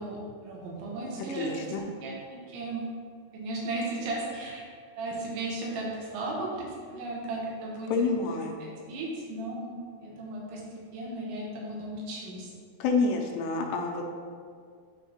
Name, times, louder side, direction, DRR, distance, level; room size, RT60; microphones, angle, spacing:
voice 1, 0.0-1.7 2.0-2.9 3.3-4.6 5.0-9.8 10.0-12.5, right 2 dB, 90° right, -2 dB, 3.5 m, -36 dB
voice 2, 1.4-1.8 7.9-8.5 12.8-14.0, left 4 dB, 80° left, 1 dB, 2.7 m, -28 dB
9.7 x 4.5 x 2.9 m, 2.1 s
omnidirectional pair, 5.1 m